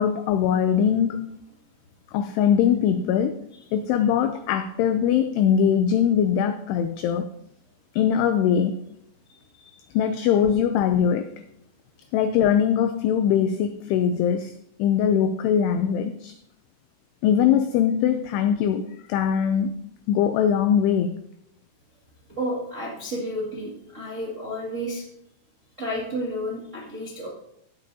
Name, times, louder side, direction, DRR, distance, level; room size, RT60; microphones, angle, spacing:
voice 1, 0.0-1.3 2.1-3.4 3.7-7.3 7.9-8.8 9.9-11.3 12.1-14.5 14.8-16.4 17.2-19.7 20.1-21.2, left 8 dB, 90° left, 9 dB, 2.3 m, -21 dB
voice 2, 9.3-9.7 22.3-25.0 25.8-27.3, equal, 80° right, -5 dB, 0.6 m, -31 dB
16.5 x 8.4 x 2.8 m, 0.76 s
omnidirectional pair, 5.3 m